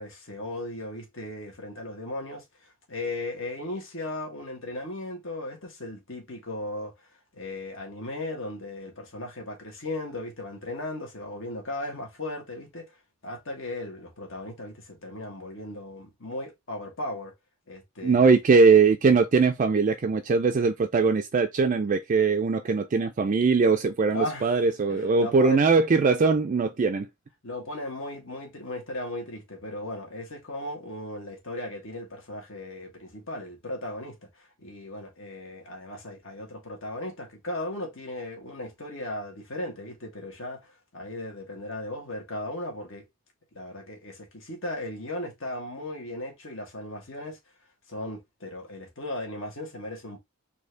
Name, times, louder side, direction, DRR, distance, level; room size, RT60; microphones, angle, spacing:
voice 1, 0.0-6.9 7.3-12.9 13.2-17.3 17.7-18.4 24.1-25.6 27.4-43.0 43.5-47.4 47.9-50.2, left 1 dB, 70° left, 1.7 m, -36 dB
voice 2, 18.0-27.1, right 4 dB, 40° right, 0.4 m, -21 dB
4.3 x 2.8 x 3.2 m
head